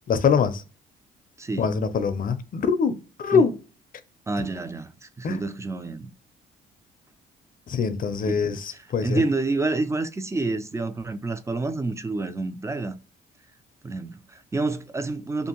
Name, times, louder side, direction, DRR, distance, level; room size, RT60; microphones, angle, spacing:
voice 1, 0.1-0.6 1.6-3.5 5.2-5.4 7.7-9.2, left 6 dB, 45° left, 0.5 m, -23 dB
voice 2, 4.3-6.1 8.2-8.6 9.0-13.0 13.8-15.5, right 3 dB, 15° right, 0.3 m, -28 dB
2.6 x 2.5 x 2.8 m
cardioid pair, 90°, 20 cm